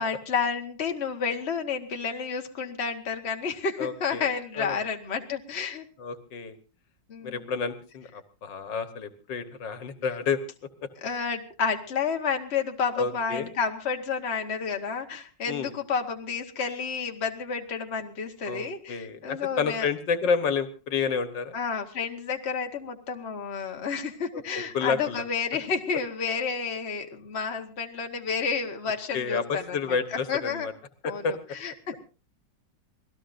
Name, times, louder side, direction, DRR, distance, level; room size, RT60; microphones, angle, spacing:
voice 1, 0.0-5.9 7.1-7.5 11.0-19.9 21.5-30.7 31.1-32.0, left 5 dB, 40° left, 4 dB, 1.6 m, -31 dB
voice 2, 3.8-4.3 4.6-4.8 6.0-6.6 7.2-10.4 10.8-10.9 13.0-13.5 15.5-15.7 18.5-21.6 24.3-25.2 29.1-30.7 31.0-31.4, left 5 dB, 80° left, 9 dB, 2.0 m, -30 dB
26.0 x 18.0 x 2.6 m, 0.34 s
omnidirectional pair, 1.9 m